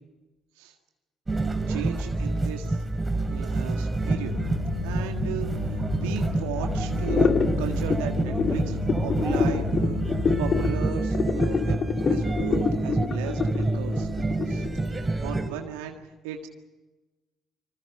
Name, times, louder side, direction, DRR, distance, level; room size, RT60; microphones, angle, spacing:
sound 1, 1.3-15.5, right 2 dB, 20° right, 3.5 m, -28 dB
voice 1, 1.7-2.8 3.3-4.3 4.8-7.3 7.6-11.8 12.1-14.1 14.5-14.7 15.2-16.0 16.2-16.5, right 9 dB, 75° right, 4 dB, 1.7 m, -36 dB
sound 2, 4.0-10.8, left 7 dB, 80° left, 7.4 m, -34 dB
sound 3, 7.0-14.8, left 6 dB, 40° left, 2.4 m, -26 dB
26.5 x 26.0 x 5.5 m, 1.1 s
figure-of-eight pair, 50°, 0 cm